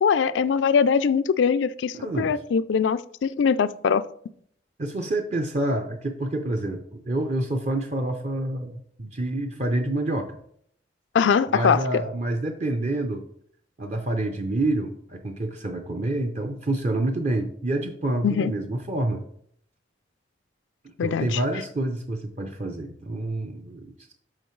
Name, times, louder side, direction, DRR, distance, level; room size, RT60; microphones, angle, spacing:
voice 1, 0.0-4.0 11.1-11.8 18.2-18.5 21.0-21.4, left 6 dB, 75° left, 0.4 m, -22 dB
voice 2, 1.9-2.4 4.8-10.3 11.5-13.2 13.8-19.2 21.0-24.1, right 1 dB, 40° right, 0.6 m, -28 dB
12.0 x 4.3 x 3.2 m
head